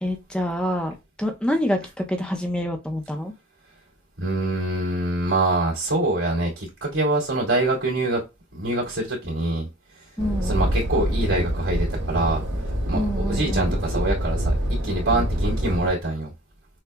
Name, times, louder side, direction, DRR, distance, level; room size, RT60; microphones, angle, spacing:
voice 1, 0.0-3.3 10.2-10.7 12.9-13.7, equal, 5° left, 5 dB, 0.5 m, -27 dB
voice 2, 4.2-8.2 8.5-9.7 9.9-10.1 10.4-12.4 12.9-16.3, right 2 dB, 90° right, -7 dB, 2.4 m, -25 dB
sound 1, 10.2-15.9, equal, 60° right, 1.0 m, -25 dB
6.6 x 2.3 x 2.2 m, 0.25 s
head